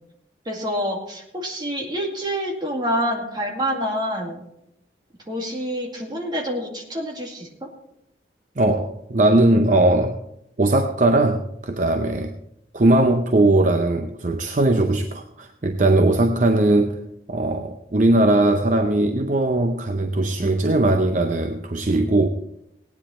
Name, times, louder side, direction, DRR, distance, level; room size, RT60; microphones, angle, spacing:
voice 1, 0.5-4.4 5.3-7.7, equal, 25° right, 0 dB, 2.2 m, -27 dB
voice 2, 8.6-10.2 10.6-12.3 12.7-17.0 17.3-22.3, right 2 dB, 45° right, 6 dB, 0.7 m, -19 dB
17.5 x 9.6 x 4.3 m, 0.82 s
head